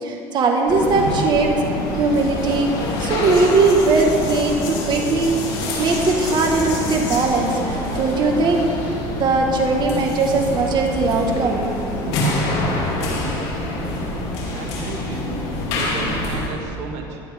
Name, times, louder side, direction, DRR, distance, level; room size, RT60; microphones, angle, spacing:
voice 1, 0.0-2.7 3.0-5.4 5.8-12.2, right 3 dB, 45° right, 1 dB, 1.6 m, -20 dB
sound 1, 0.7-16.5, left 1 dB, 75° left, 2.9 m, -26 dB
voice 2, 14.5-15.3 15.7-17.2, right 4 dB, 75° right, 1 dB, 1.7 m, -33 dB
16.5 x 11.5 x 3.6 m, 2.7 s
supercardioid pair, 95°, 10 cm